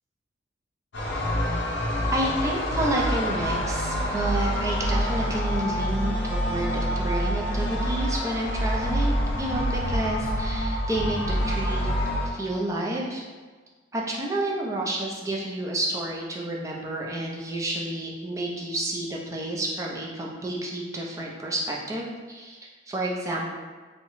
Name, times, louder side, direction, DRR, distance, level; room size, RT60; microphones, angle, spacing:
sound 1, 0.9-12.3, equal, 70° left, 0.6 m, -26 dB
voice 1, 2.1-11.9 12.2-13.2 13.9-22.6 22.9-23.6, right 1 dB, 15° right, -3 dB, 0.4 m, -30 dB
3.6 x 2.1 x 3.0 m, 1.4 s
head